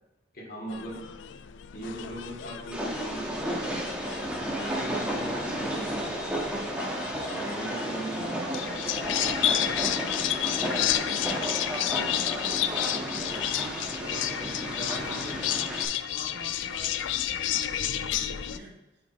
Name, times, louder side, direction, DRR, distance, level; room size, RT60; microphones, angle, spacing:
voice 1, 0.3-1.1 1.7-4.0 4.5-6.4 6.7-7.0 7.3-8.5, right 1 dB, 55° left, -1 dB, 1.8 m, -39 dB
sound 1, 0.7-18.6, left 11 dB, 90° left, 0.4 m, -31 dB
Train, 2.7-15.9, right 1 dB, 5° right, 1.1 m, -33 dB
voice 2, 7.9-9.9 10.2-15.7 16.1-18.8, right 1 dB, 65° right, 0 dB, 1.3 m, -45 dB
5.3 x 4.5 x 4.4 m, 0.95 s
head